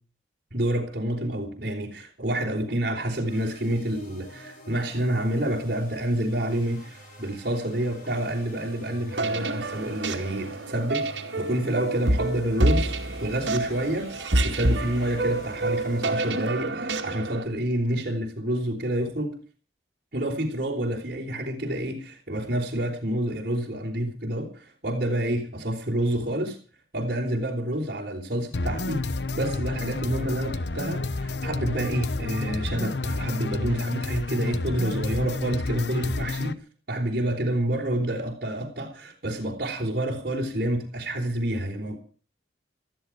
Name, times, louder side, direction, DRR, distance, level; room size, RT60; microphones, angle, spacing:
voice 1, 0.5-13.0 13.2-14.1 14.4-19.4 20.1-26.6 26.9-29.1 29.3-36.6 36.9-42.0, right 1 dB, 50° right, 3.8 m, -28 dB
sound 1, 3.2-16.7, equal, 45° left, 8.0 m, -47 dB
sound 2, 9.1-17.4, right 2 dB, 75° right, 2.3 m, -28 dB
sound 3, 28.5-36.5, left 3 dB, 65° left, 1.0 m, -30 dB
18.5 x 13.5 x 4.7 m
head